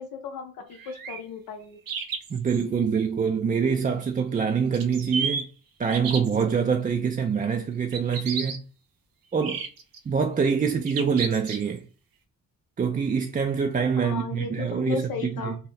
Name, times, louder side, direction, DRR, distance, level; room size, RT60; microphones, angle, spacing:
voice 1, 0.0-1.8 14.0-15.6, left 6 dB, 85° left, 0.5 m, -35 dB
sound 1, 0.7-1.2 1.9-2.6 4.7-5.4 5.9-6.4 7.9-8.6 9.4-10.0 10.9-11.8, right 5 dB, 75° right, 0.7 m, -32 dB
voice 2, 2.3-5.5 5.8-8.6 9.3-9.6 10.1-11.8 12.8-15.5, right 6 dB, 25° right, 0.3 m, -25 dB
2.8 x 2.0 x 3.9 m
cardioid pair, 65°, 35 cm